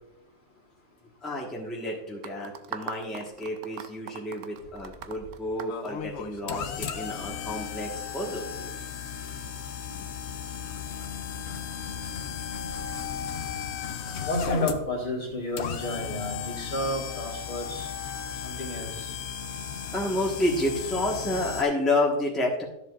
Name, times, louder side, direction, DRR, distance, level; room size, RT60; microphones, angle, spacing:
voice 1, 1.2-8.8 19.9-22.6, left 1 dB, ahead, -3 dB, 1.3 m, -30 dB
sound 1, 2.2-6.6, right 8 dB, 65° right, 0.9 m, -40 dB
sound 2, 5.7-21.6, left 7 dB, 60° left, 0.8 m, -35 dB
voice 2, 14.3-17.9 18.4-19.1, left 1 dB, 35° left, -2 dB, 1.8 m, -31 dB
13.0 x 7.3 x 2.5 m, 0.86 s
omnidirectional pair, 1.5 m